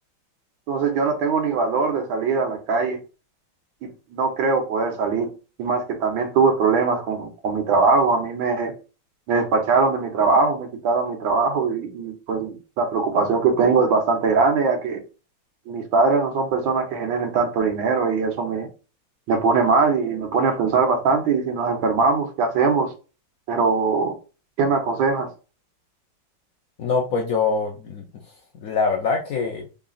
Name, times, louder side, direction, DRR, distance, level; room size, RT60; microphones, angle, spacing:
voice 1, 0.7-3.0 3.8-5.3 5.6-8.7 9.3-15.0 15.7-18.7 19.3-22.9 23.5-24.2 24.6-25.3, right 4 dB, 90° right, 1.7 m, -21 dB
voice 2, 26.8-28.1 28.5-29.7, left 4 dB, 70° left, 0.8 m, -24 dB
3.7 x 2.4 x 3.7 m
omnidirectional pair, 2.1 m